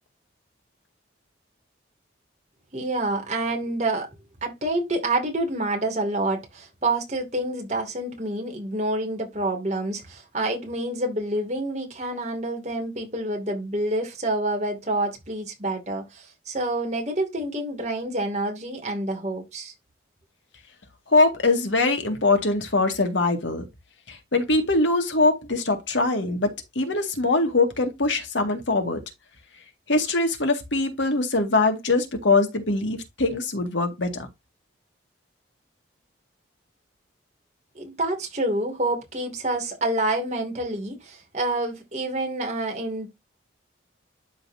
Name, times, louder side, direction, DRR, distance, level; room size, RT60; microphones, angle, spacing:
voice 1, 2.7-4.1 4.4-19.7 37.7-43.1, right 2 dB, 35° right, 2.6 m, -28 dB
voice 2, 21.1-23.6 24.1-29.0 29.9-34.3, left 3 dB, 80° left, 2.1 m, -22 dB
12.0 x 4.2 x 2.8 m
head